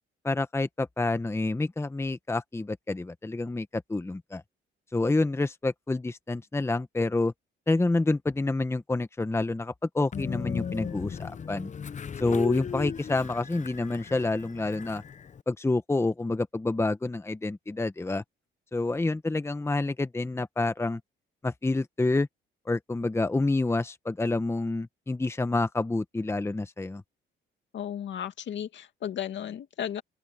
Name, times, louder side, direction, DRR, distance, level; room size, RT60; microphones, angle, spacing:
voice 1, 0.2-4.4 4.9-7.3 7.7-11.7 12.2-15.0 15.5-18.2 18.7-21.0 21.4-22.3 22.7-27.0, left 2 dB, 15° left, 1.0 m, -28 dB
Train, 10.1-15.4, left 7 dB, 35° left, 0.8 m, -36 dB
voice 2, 27.7-30.0, left 9 dB, 65° left, 2.4 m, -34 dB
open air
cardioid pair, 90°, 20 cm